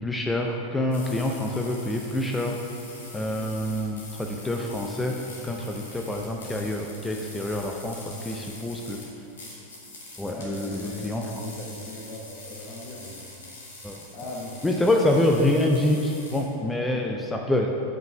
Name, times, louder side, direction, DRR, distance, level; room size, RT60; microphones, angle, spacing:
voice 1, 0.0-2.6 3.1-9.0 10.2-11.4 13.8-14.1 14.6-17.7, left 1 dB, 10° left, 1 dB, 0.5 m, -26 dB
sound 1, 0.9-16.4, left 2 dB, 65° left, 1.9 m, -44 dB
voice 2, 8.0-8.3 8.7-8.8 10.3-13.4 14.1-15.0, left 1 dB, 35° left, -4 dB, 1.1 m, -39 dB
7.6 x 5.6 x 5.3 m, 2.8 s
figure-of-eight pair, 90°, 0 cm